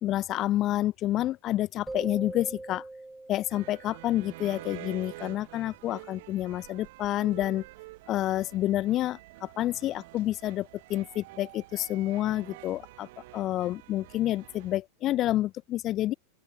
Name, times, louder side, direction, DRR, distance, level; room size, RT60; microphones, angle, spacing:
voice 1, 0.0-2.8 3.3-7.6 8.1-13.1 13.3-16.1, left 14 dB, 35° left, 0.9 m, -29 dB
sound 1, 1.9-4.5, right 2 dB, 5° right, 0.4 m, -41 dB
sound 2, 3.5-14.8, right 21 dB, 50° right, 1.3 m, -48 dB
open air
figure-of-eight pair, 90°, 0 cm